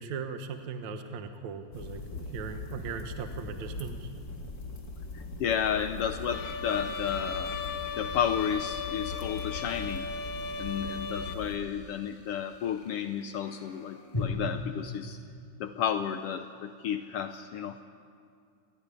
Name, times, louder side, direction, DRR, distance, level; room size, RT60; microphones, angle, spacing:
voice 1, 0.0-4.1, right 5 dB, 70° right, 6 dB, 2.5 m, -38 dB
sound 1, 0.6-0.7 4.1-14.2, left 2 dB, 10° left, 7.6 m, -47 dB
sound 2, 1.7-11.6, left 3 dB, 30° left, 2.4 m, -41 dB
voice 2, 5.1-7.6 8.0-10.1 10.6-15.2 15.6-17.8, left 8 dB, 80° left, 8 dB, 1.3 m, -32 dB
Bowed string instrument, 6.3-11.3, left 5 dB, 55° left, 2.2 m, -36 dB
28.0 x 17.5 x 10.0 m, 2.3 s
omnidirectional pair, 3.5 m